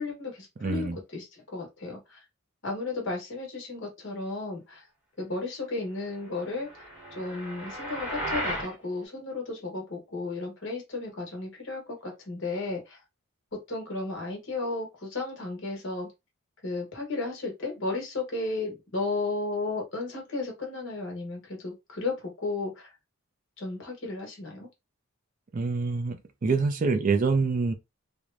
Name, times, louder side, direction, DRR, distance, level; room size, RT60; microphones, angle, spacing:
voice 1, 0.0-2.2 2.6-4.9 5.2-13.0 13.7-16.1 16.6-22.9 23.6-24.7, left 3 dB, 55° left, 1.2 m, -34 dB
voice 2, 0.6-1.0 25.5-27.7, right 4 dB, 35° right, 0.3 m, -26 dB
sound 1, 6.5-8.7, equal, 5° right, 1.0 m, -35 dB
3.1 x 2.1 x 2.5 m
head